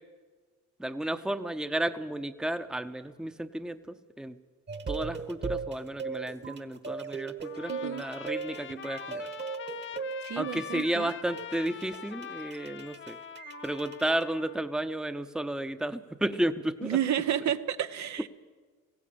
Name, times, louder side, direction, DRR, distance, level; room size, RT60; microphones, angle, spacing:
voice 1, 0.8-4.4 4.9-9.3 10.4-13.2 13.6-17.0, right 1 dB, ahead, 10 dB, 0.8 m, -32 dB
sound 1, 4.7-14.2, right 5 dB, 35° right, 1.4 m, -38 dB
Trumpet, 7.4-14.6, left 8 dB, 40° left, 0.8 m, -43 dB
voice 2, 7.7-8.0 10.2-11.1 16.8-18.3, right 10 dB, 65° right, 10 dB, 0.9 m, -31 dB
19.0 x 16.0 x 8.7 m, 1.4 s
cardioid pair, 90°, 30 cm